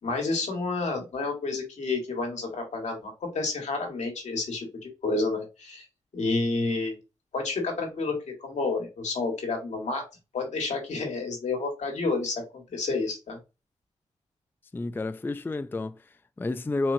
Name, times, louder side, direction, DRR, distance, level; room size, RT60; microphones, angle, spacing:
voice 1, 0.0-5.8 6.1-6.9 7.3-8.1 8.4-10.0 10.3-13.4, left 3 dB, 75° left, 1.7 m, -30 dB
voice 2, 14.7-16.9, left 2 dB, 15° left, 0.3 m, -31 dB
4.4 x 3.0 x 2.7 m
cardioid pair, 45°, 12 cm